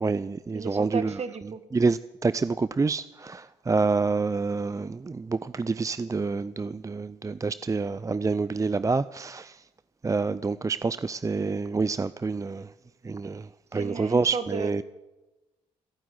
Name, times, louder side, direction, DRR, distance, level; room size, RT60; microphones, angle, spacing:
voice 1, 0.0-1.1 1.7-9.6 10.0-12.7 13.0-14.8, right 4 dB, 20° right, 0.5 m, -27 dB
voice 2, 0.5-1.6 13.7-14.8, right 5 dB, 50° right, 1.8 m, -34 dB
15.5 x 9.4 x 9.6 m
supercardioid pair, 55°, 14 cm